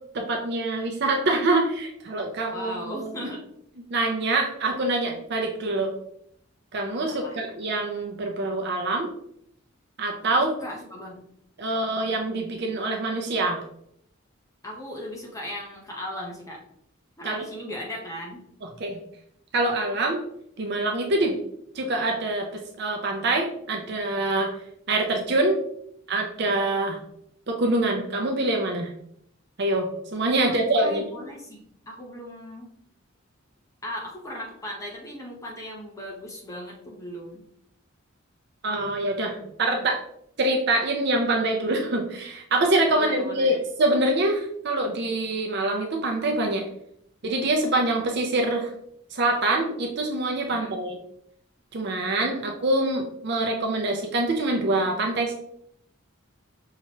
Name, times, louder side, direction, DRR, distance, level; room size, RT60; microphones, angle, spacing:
voice 1, 0.1-3.1 3.9-5.9 6.7-9.1 10.0-10.5 11.6-13.6 17.2-17.4 18.8-19.0 19.5-20.2 20.6-21.4 21.7-24.5 24.9-25.6 26.1-27.0 27.5-28.9 29.6-31.0 38.6-40.0 40.4-46.7 47.2-48.7 49.1-51.0 51.7-55.3, right 2 dB, 55° right, 2 dB, 0.6 m, -25 dB
voice 2, 2.5-3.4 7.1-7.4 10.5-11.3 14.6-16.6 17.2-18.5 30.4-32.7 33.8-37.4 42.9-43.6 50.5-50.7, left 1 dB, 15° left, -2 dB, 0.8 m, -37 dB
5.7 x 3.0 x 2.9 m, 0.71 s
head